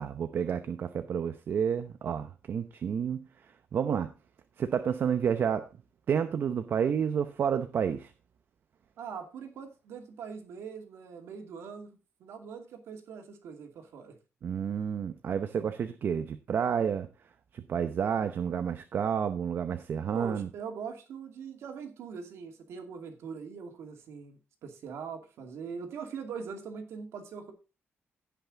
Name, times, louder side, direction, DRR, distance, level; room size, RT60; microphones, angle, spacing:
voice 1, 0.0-3.3 3.7-4.1 4.6-5.7 6.1-8.1 14.4-17.1 17.5-20.5, right 7 dB, 55° right, 0.8 m, -30 dB
voice 2, 9.0-14.2 20.1-27.5, right 6 dB, 90° right, 2.3 m, -42 dB
16.5 x 5.8 x 3.9 m
cardioid pair, 140°, 4 cm